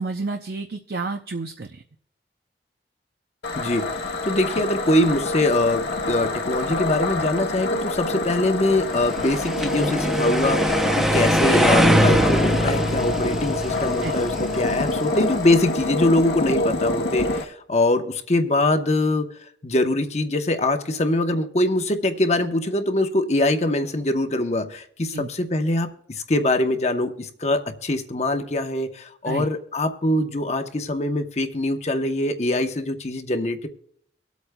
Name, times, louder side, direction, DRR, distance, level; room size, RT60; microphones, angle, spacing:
voice 1, 0.0-1.8 14.0-14.1 25.1-25.3 29.2-29.5, right 3 dB, 55° right, 6 dB, 0.6 m, -30 dB
sound 1, 3.4-17.4, left 2 dB, 65° left, 1.4 m, -26 dB
voice 2, 3.6-33.7, left 1 dB, 35° left, 6 dB, 0.9 m, -23 dB
sound 2, 9.1-15.2, equal, 5° right, 0.6 m, -22 dB
24.5 x 8.2 x 2.2 m, 0.68 s
head